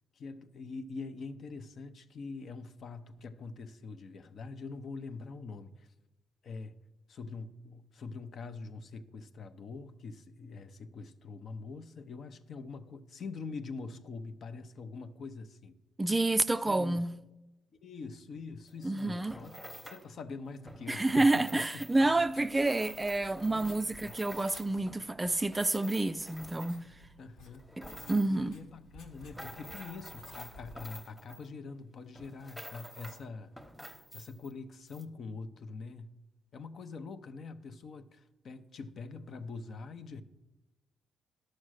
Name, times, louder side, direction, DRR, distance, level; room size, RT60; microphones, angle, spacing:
voice 1, 0.1-5.9 6.4-6.7 7.1-15.8 16.6-17.1 17.8-19.6 19.8-21.8 23.5-24.2 27.2-27.6 28.1-33.5 34.1-36.2 36.5-40.2, left 4 dB, 55° left, 0.6 m, -44 dB
voice 2, 16.0-17.2 18.8-19.4 20.9-26.9 27.8-28.5, right 2 dB, 15° right, 0.3 m, -29 dB
sound 1, 18.7-20.1 20.6-27.0 27.5-28.5 29.0-31.8 32.2-33.3 33.6-34.5 34.9-35.0, equal, 5° left, 1.0 m, -49 dB
Writing, 21.9-30.9, left 1 dB, 85° left, 1.5 m, -56 dB
11.5 x 6.4 x 6.4 m
cardioid pair, 90°, 0 cm